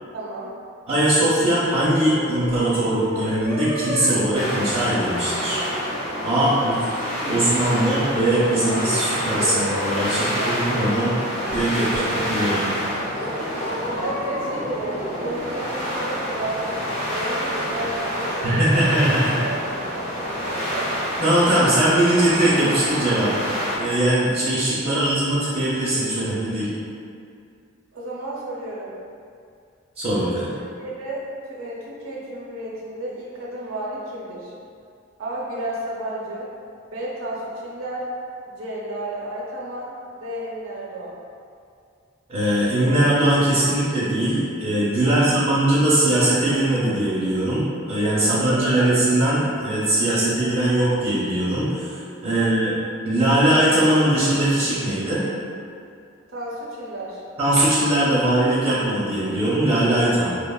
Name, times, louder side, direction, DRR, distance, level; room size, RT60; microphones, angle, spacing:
voice 1, 0.1-0.5 6.4-6.8 10.2-10.6 11.8-12.5 13.4-19.0 19.4-19.6 20.0-21.0 24.8-25.1 27.9-28.9 30.5-31.2 31.5-34.5 35.2-36.5 36.9-38.1 38.5-41.2 45.0-45.6 48.2-48.9 52.3-52.5 56.3-57.2, right 1 dB, 85° right, -5 dB, 0.5 m, -33 dB
voice 2, 0.9-5.6 6.2-6.7 7.3-11.1 11.5-12.7 18.4-19.4 21.2-23.4 23.8-26.7 30.0-30.5 42.3-52.7 53.0-55.2 57.4-60.3, right 1 dB, 30° right, -10 dB, 0.4 m, -20 dB
sound 1, 1.7-10.2 10.7-11.1 11.4-12.7 13.1-16.9, equal, 60° left, 0.6 m, -33 dB
sound 2, 4.3-23.8, equal, 30° left, 0.8 m, -28 dB
3.1 x 2.0 x 2.2 m, 2.4 s
head